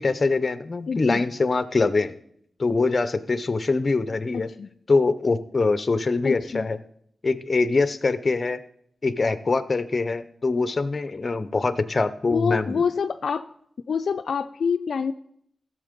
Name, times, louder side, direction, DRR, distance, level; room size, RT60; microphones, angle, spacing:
voice 1, 0.0-2.1 2.6-4.5 4.9-6.8 7.2-8.6 9.0-12.8, left 3 dB, 45° left, 13 dB, 0.7 m, -23 dB
voice 2, 0.9-1.2 4.3-4.7 6.2-6.7 12.3-13.5 13.9-15.1, left 6 dB, 80° left, 9 dB, 0.4 m, -26 dB
15.5 x 6.5 x 5.2 m, 0.70 s
cardioid pair, 75°, 0 cm